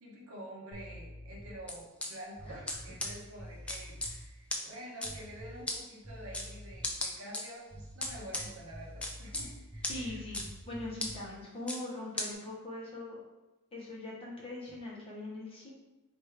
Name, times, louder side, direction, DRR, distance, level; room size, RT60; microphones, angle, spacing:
voice 1, 0.0-10.2, right 1 dB, 75° right, -3 dB, 1.1 m, -48 dB
sound 1, 0.7-1.7 2.3-4.3 5.0-5.8 6.0-7.0 7.7-11.3, equal, 15° right, 0.8 m, -48 dB
sound 2, 1.7-2.1 2.7-2.8 3.0-3.1 3.7-4.1 4.5-4.6 5.0-5.1 5.7-5.8 6.3-6.5 6.8-7.4 8.0-8.4 9.0-9.4 9.8-9.9 10.3-10.4 11.0-11.1 11.7-11.8 12.2-12.3, left 1 dB, 5° left, 0.4 m, -34 dB
voice 2, 9.9-13.2 13.7-15.7, left 2 dB, 25° left, -5 dB, 1.1 m, -42 dB
3.3 x 3.3 x 4.7 m, 1.1 s
head